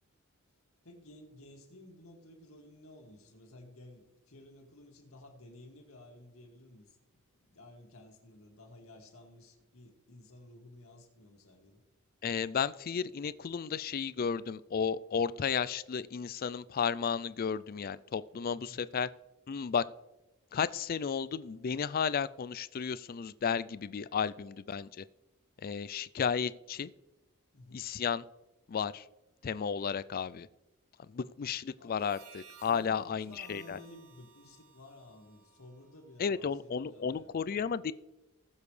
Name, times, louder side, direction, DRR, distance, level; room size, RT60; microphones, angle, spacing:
voice 1, 0.8-7.0 7.4-11.8 18.5-18.9 27.5-27.9 31.8-32.0 32.6-37.3, left 1 dB, 70° left, 1 dB, 2.3 m, -54 dB
voice 2, 12.2-19.1 19.5-19.8 20.5-25.0 25.6-26.9 27.7-28.2 28.7-29.0 29.4-30.5 31.1-33.8 36.2-37.9, left 6 dB, 40° left, 17 dB, 0.4 m, -33 dB
Harmonica, 31.9-36.5, right 6 dB, 85° right, 1.8 m, -59 dB
19.5 x 7.2 x 3.3 m, 1.0 s
head